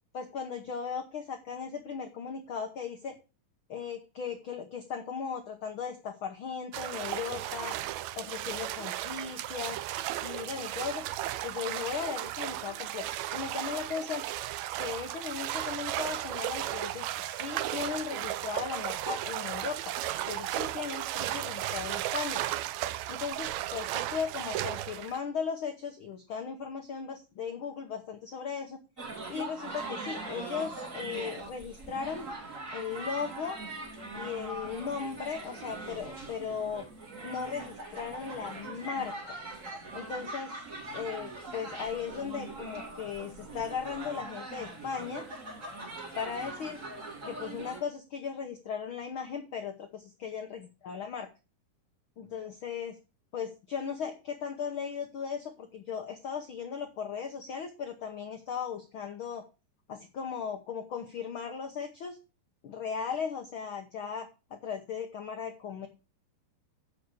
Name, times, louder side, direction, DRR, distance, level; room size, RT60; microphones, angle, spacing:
voice 1, 0.1-3.2 3.7-7.8 8.2-9.8 10.2-11.0 11.4-13.1 13.3-14.2 14.8-22.4 23.1-28.8 29.3-32.3 32.7-33.6 34.1-36.9 37.2-39.4 39.9-40.6 40.9-45.3 46.1-46.8 47.2-51.3 52.2-53.0 53.3-59.4 59.9-62.2 62.6-65.9, left 6 dB, 75° left, 4 dB, 1.2 m, -37 dB
sound 1, 6.7-25.2, right 14 dB, 80° right, 1.6 m, -35 dB
sound 2, 29.0-47.8, right 2 dB, 25° right, 2.4 m, -41 dB
8.1 x 6.6 x 6.8 m, 0.31 s
omnidirectional pair, 3.8 m